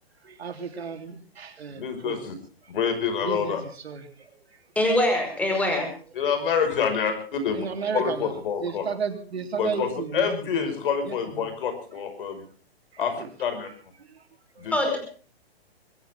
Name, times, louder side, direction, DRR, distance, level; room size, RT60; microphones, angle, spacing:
voice 1, 0.2-2.3 2.6-2.7 3.2-4.3 7.5-10.7 11.0-11.5 12.3-12.5 12.9-13.3 14.0-14.3 14.6-14.7, right 5 dB, 85° right, 6 dB, 3.6 m, -34 dB
voice 2, 1.8-2.3 2.7-3.6 6.2-7.7 7.9-8.9 9.6-9.9 10.1-12.4 13.0-13.1 13.4-13.7 14.6-14.8, left 7 dB, 60° left, 8 dB, 5.8 m, -27 dB
voice 3, 4.8-5.9 14.7-15.0, left 1 dB, 5° left, 4 dB, 5.2 m, -23 dB
23.0 x 16.0 x 3.7 m, 0.41 s
hypercardioid pair, 150°, 31 cm